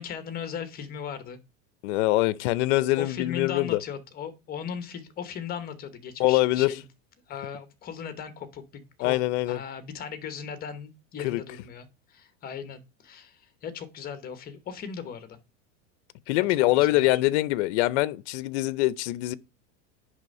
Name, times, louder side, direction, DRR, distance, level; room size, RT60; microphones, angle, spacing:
voice 1, 0.0-1.4 3.0-6.8 7.3-15.4 16.5-17.2, left 7 dB, 25° left, 1.0 m, -38 dB
voice 2, 1.8-3.8 6.2-6.7 9.0-9.6 11.2-11.4 16.3-19.4, left 18 dB, 60° left, 0.6 m, -24 dB
10.5 x 3.5 x 5.3 m
supercardioid pair, 160°, 38 cm